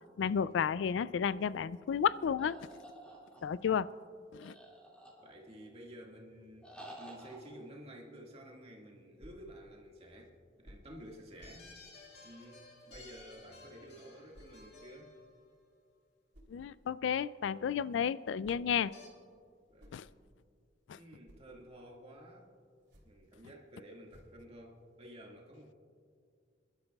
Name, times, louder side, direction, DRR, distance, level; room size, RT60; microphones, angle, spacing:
voice 1, 0.2-2.6 3.4-3.9 4.3-4.5 16.5-18.9 19.9-20.1 20.9-21.0, left 7 dB, 85° left, 18 dB, 0.3 m, -32 dB
sound 1, 2.4-3.7 4.4-5.6 6.6-7.4, right 1 dB, 5° left, 2.1 m, -51 dB
voice 2, 5.2-6.7 7.0-11.7 12.2-15.1 19.7-19.9 21.0-22.5 23.0-25.7, equal, 35° right, -1 dB, 1.9 m, -52 dB
sound 2, 9.2-9.5 10.6-10.9 11.4-11.7 12.9-13.2 14.3-14.6 16.3-16.6 18.2-18.8 19.5-20.5 20.9-21.5 22.7-23.3 24.1-24.5, equal, 70° right, 3.2 m, -58 dB
sound 3, 11.4-15.9 18.9-19.1, left 3 dB, 65° left, 1.9 m, -56 dB
27.0 x 12.0 x 2.3 m, 2.2 s
head